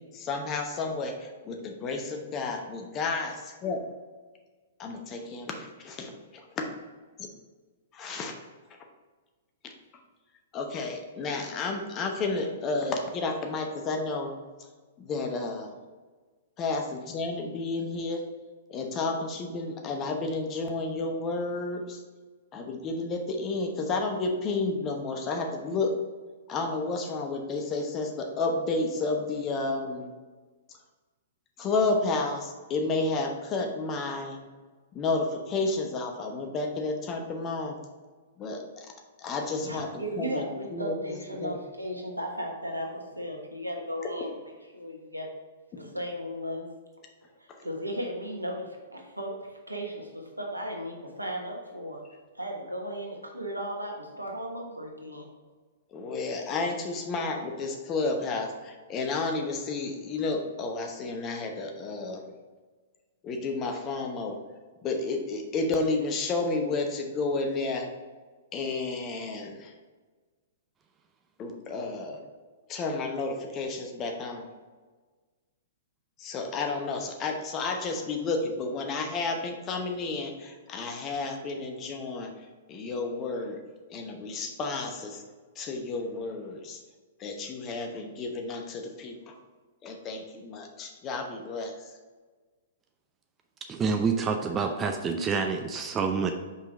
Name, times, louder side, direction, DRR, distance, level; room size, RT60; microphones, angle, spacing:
voice 1, 0.1-3.8 4.8-6.1 7.2-7.3 7.9-8.3 10.5-14.3 15.0-15.7 16.6-18.2 18.7-22.0 22.5-25.9 26.5-30.1 31.6-34.4 34.9-37.8 38.4-38.6 39.2-40.9 41.4-41.5 45.7-45.8 55.9-62.3 63.2-64.4 64.8-67.9 68.5-69.7 71.4-72.2 72.7-74.5 76.2-82.3 82.7-83.6 83.9-85.2 85.6-86.8 87.2-89.2 89.8-91.7, left 3 dB, 25° left, 3 dB, 0.9 m, -31 dB
voice 2, 39.6-45.3 45.7-46.7 47.4-49.4 49.7-52.0 52.3-55.3, equal, 90° right, 1 dB, 1.2 m, -36 dB
voice 3, 93.7-96.3, right 5 dB, 20° right, 4 dB, 0.5 m, -27 dB
5.6 x 4.9 x 3.8 m, 1.4 s
figure-of-eight pair, 110°, 0 cm